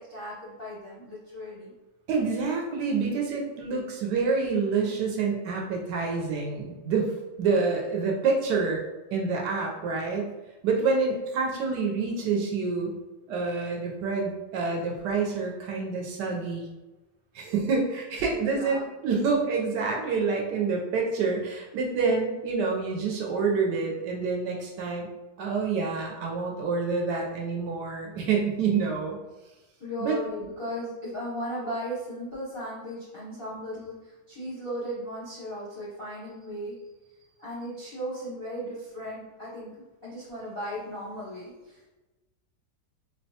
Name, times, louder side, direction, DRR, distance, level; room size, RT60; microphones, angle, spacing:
voice 1, 0.0-1.7 18.3-18.8 19.1-19.4 28.1-28.2 29.8-36.8 37.4-39.7 40.0-41.9, equal, 50° left, -8 dB, 0.6 m, -36 dB
voice 2, 2.1-8.8 9.1-10.3 10.6-12.9 13.3-16.7 17.3-25.1 25.4-29.2 30.0-30.1, right 4 dB, 75° right, 0 dB, 1.1 m, -27 dB
4.3 x 2.1 x 2.7 m, 1.1 s
omnidirectional pair, 2.0 m